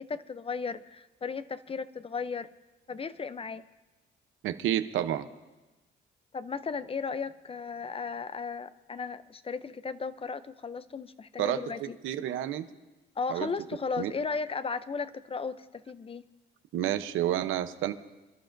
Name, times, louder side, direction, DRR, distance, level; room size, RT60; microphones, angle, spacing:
voice 1, 0.0-2.5 2.9-3.6 6.3-12.0 13.2-16.2, left 5 dB, 30° left, 14 dB, 0.5 m, -35 dB
voice 2, 4.4-5.2 11.4-11.6 12.0-12.6 13.3-13.5 14.0-14.1 16.7-17.9, right 12 dB, 85° right, 9 dB, 0.8 m, -29 dB
27.5 x 11.5 x 2.6 m, 1.1 s
cardioid pair, 90°, 20 cm